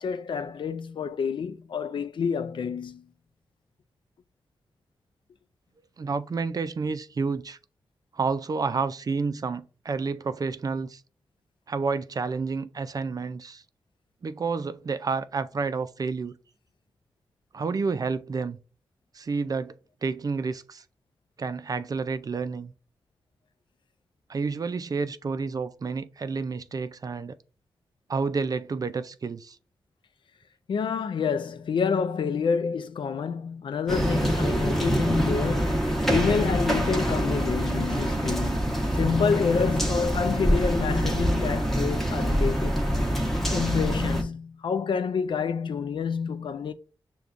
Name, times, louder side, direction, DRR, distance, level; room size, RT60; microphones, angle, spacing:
voice 1, 0.0-3.1 30.7-42.8 43.5-46.7, left 6 dB, 65° left, 0.4 m, -28 dB
voice 2, 6.0-7.6 8.1-11.0 11.7-13.6 14.2-16.4 17.5-18.6 19.1-19.7 20.0-20.8 21.4-22.7 24.3-27.4 28.1-29.6, right 4 dB, 45° right, 0.4 m, -30 dB
sound 1, 33.9-44.2, equal, 5° left, 1.0 m, -25 dB
6.7 x 2.3 x 2.5 m
cardioid pair, 65°, 9 cm